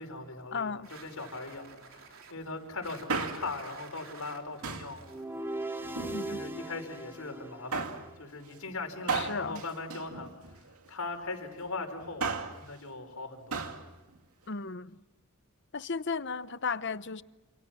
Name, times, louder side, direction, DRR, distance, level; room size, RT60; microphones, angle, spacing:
voice 1, 0.0-5.0 6.3-10.3 10.9-12.3 12.6-13.7, left 3 dB, 85° left, 5.4 m, -40 dB
voice 2, 0.5-0.9 6.0-6.4 9.1-9.6 14.5-15.0 15.7-17.2, left 4 dB, 50° left, 0.8 m, -35 dB
sound 1, 0.8-6.5, right 5 dB, 65° right, 3.8 m, -51 dB
Male speech man speaking, 2.9-3.7 4.6-5.0 5.8-6.6 7.7-8.1 9.1-10.7 12.0-12.6 13.5-13.8 14.1-14.2, right 4 dB, 85° right, 2.5 m, -35 dB
sound 2, 5.0-8.3, right 2 dB, 10° right, 2.5 m, -39 dB
29.0 x 28.0 x 6.2 m
head